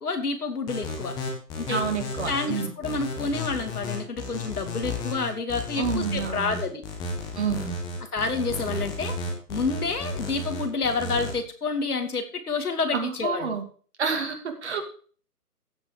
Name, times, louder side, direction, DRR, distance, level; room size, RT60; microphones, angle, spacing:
voice 1, 0.0-1.1 1.6-1.8 2.3-6.8 8.1-9.1 9.5-13.5, left 4 dB, 70° left, 6 dB, 2.6 m, -29 dB
sound 1, 0.7-11.3, left 3 dB, 10° left, 1.5 m, -33 dB
voice 2, 1.7-2.7 5.8-6.6 7.3-7.8 12.9-13.6 14.0-14.4 14.6-14.8, right 6 dB, 45° right, 5 dB, 2.5 m, -28 dB
15.5 x 5.5 x 5.1 m, 0.41 s
figure-of-eight pair, 150°, 47 cm